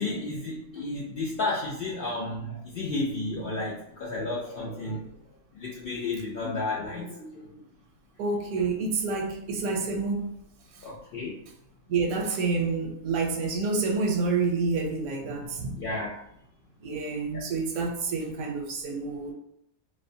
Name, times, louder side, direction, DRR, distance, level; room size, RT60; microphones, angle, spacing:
voice 1, 0.0-5.1 5.6-7.5 10.8-11.4 15.8-16.1, left 2 dB, 90° left, -5 dB, 0.4 m, -32 dB
voice 2, 8.2-10.3 10.7-10.8 11.9-15.9 16.8-19.3, right 4 dB, 80° right, 2 dB, 1.0 m, -28 dB
2.5 x 2.1 x 2.6 m, 0.75 s
omnidirectional pair, 1.5 m